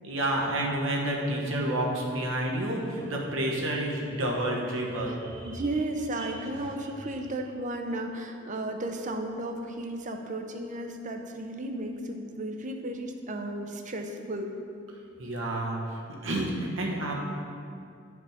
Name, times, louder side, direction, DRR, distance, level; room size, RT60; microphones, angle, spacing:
voice 1, 0.0-5.5 6.2-6.3 15.2-15.8 16.2-17.1, right 1 dB, 80° right, -1 dB, 1.2 m, -29 dB
voice 2, 5.1-14.5, right 1 dB, 40° right, 4 dB, 0.6 m, -34 dB
11.0 x 4.9 x 3.6 m, 2.4 s
head